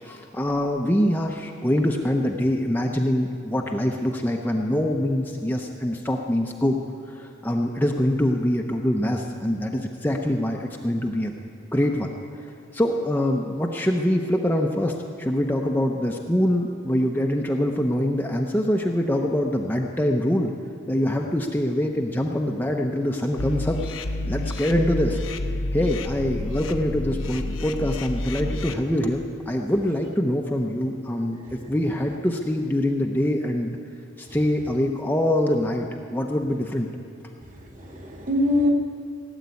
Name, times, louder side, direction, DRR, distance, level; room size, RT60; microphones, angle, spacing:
voice 1, 0.0-6.8 7.1-11.3 11.7-12.2 12.4-20.5 20.9-25.2 25.7-33.8 34.2-36.9, left 1 dB, 10° left, 1 dB, 0.7 m, -24 dB
sound 1, 23.4-28.7, left 1 dB, 75° left, 0.9 m, -29 dB
voice 2, 31.4-31.7 34.2-34.4 37.4-38.7, left 1 dB, 40° right, 1 dB, 2.1 m, -26 dB
17.0 x 8.1 x 9.5 m, 2.7 s
head